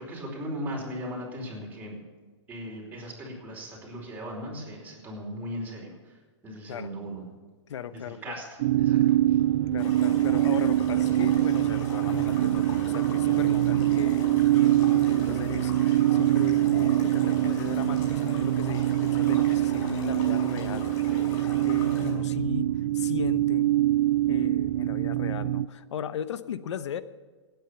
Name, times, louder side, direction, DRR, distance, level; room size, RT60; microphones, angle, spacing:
voice 1, 0.0-2.0 2.5-5.9 6.4-7.2 7.9-9.0, equal, 10° right, -3 dB, 4.8 m, -37 dB
voice 2, 7.7-8.3 9.7-23.7 24.0-27.0, left 8 dB, 70° left, 14 dB, 1.0 m, -37 dB
sound 1, 8.6-25.7, right 14 dB, 40° right, 0.4 m, -24 dB
sound 2, 9.8-22.1, left 2 dB, 45° left, 5.6 m, -40 dB
16.5 x 9.4 x 7.0 m, 1.4 s
hypercardioid pair, 140°, 15 cm